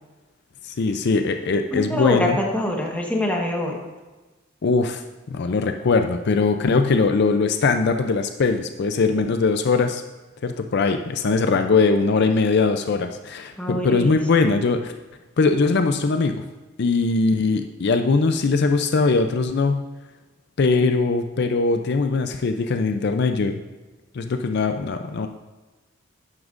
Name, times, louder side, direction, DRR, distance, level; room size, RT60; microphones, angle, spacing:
voice 1, 0.6-2.4 4.6-5.0 5.3-10.0 10.4-14.9 15.4-16.4 16.8-19.8 20.6-23.6 24.1-25.3, left 4 dB, 55° left, 7 dB, 0.5 m, -21 dB
voice 2, 1.7-3.8 13.6-14.5, left 1 dB, 5° left, -1 dB, 1.3 m, -25 dB
12.0 x 9.6 x 2.5 m, 1.2 s
head